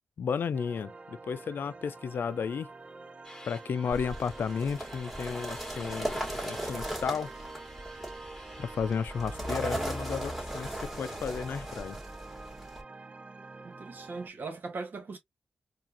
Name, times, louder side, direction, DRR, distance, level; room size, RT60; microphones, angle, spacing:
voice 1, 0.2-2.7 3.5-7.3 8.6-12.0, left 6 dB, 65° left, 0.4 m, -33 dB
sound 1, 0.5-14.3, right 3 dB, 35° right, 0.4 m, -47 dB
sound 2, 3.2-9.5, left 1 dB, 10° left, 1.3 m, -51 dB
sound 3, 3.9-12.8, right 1 dB, 5° right, 2.1 m, -37 dB
voice 2, 13.6-15.2, right 4 dB, 60° right, 1.5 m, -39 dB
4.6 x 2.5 x 2.6 m
cardioid pair, 70°, 4 cm